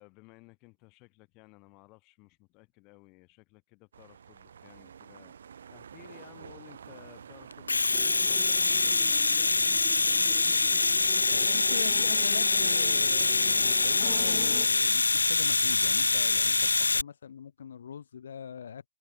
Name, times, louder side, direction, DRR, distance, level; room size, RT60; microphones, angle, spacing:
voice 1, 0.0-5.3 5.7-10.4, left 27 dB, 35° left, 2.6 m, -56 dB
sound 1, 3.9-16.0, right 7 dB, 70° right, 1.3 m, -52 dB
Domestic sounds home sounds, 7.5-17.0, left 3 dB, 85° left, 0.3 m, -25 dB
sound 2, 7.9-14.7, left 3 dB, 10° left, 0.6 m, -45 dB
voice 2, 11.3-18.9, left 7 dB, 70° left, 1.2 m, -42 dB
figure-of-eight pair, 115°, 0 cm